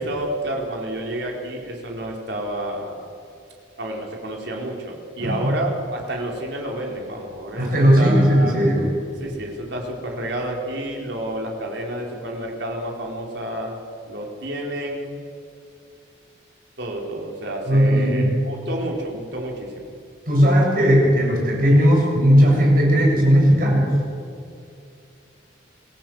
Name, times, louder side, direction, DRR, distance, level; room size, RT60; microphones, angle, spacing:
voice 1, 0.0-3.1 3.8-8.6 9.2-15.2 16.8-19.9, right 1 dB, 60° right, 0 dB, 4.4 m, -30 dB
voice 2, 5.2-5.5 7.6-8.9 17.7-18.3 20.3-23.9, equal, 45° right, -1 dB, 7.4 m, -16 dB
26.5 x 17.0 x 8.0 m, 2.5 s
head